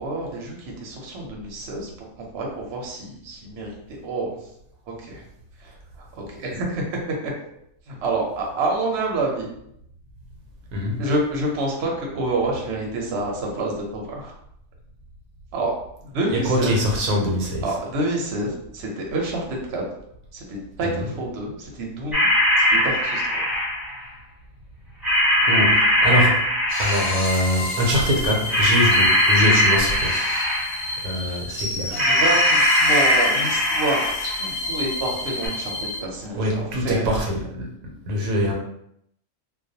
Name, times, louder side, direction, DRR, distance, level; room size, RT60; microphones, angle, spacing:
voice 1, 0.0-1.9 2.3-4.4 4.9-5.2 5.6-5.8 6.1-7.3 7.9-9.5 11.0-14.3 15.5-15.7 16.0-16.8 17.6-19.8 20.3-22.3 22.6-23.3 30.0-30.6 31.1-31.4 31.9-34.1 34.4-37.2, right 2 dB, 60° right, -1 dB, 0.8 m, -28 dB
voice 2, 10.7-11.0 16.3-17.6 21.0-21.1 25.4-26.4 26.8-30.2 31.0-32.0 36.3-37.7 38.1-38.5, equal, 80° right, -1 dB, 1.0 m, -23 dB
sound 1, 22.1-24.0 25.0-27.5 28.5-30.9 32.0-34.4 35.4-35.5, left 1 dB, ahead, 0.8 m, -20 dB
sound 2, 26.7-36.0, left 2 dB, 50° left, 0.7 m, -29 dB
2.3 x 2.2 x 2.7 m, 0.75 s
omnidirectional pair, 1.4 m